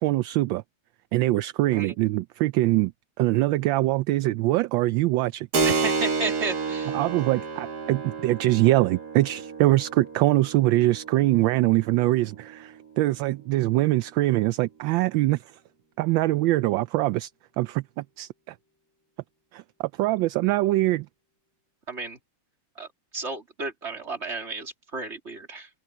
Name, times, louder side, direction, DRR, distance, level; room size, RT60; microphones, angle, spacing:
voice 1, 0.0-0.6 1.1-2.9 3.2-5.7 6.9-15.4 16.0-17.3 17.6-18.5 19.5-21.1, right 17 dB, 75° right, 1.2 m, -23 dB
Keyboard (musical), 5.5-13.7, right 4 dB, 50° right, 2.2 m, -31 dB
voice 2, 5.6-6.9 21.9-22.2 22.8-22.9 23.1-25.7, right 3 dB, 30° right, 3.2 m, -33 dB
omnidirectional pair, 2.3 m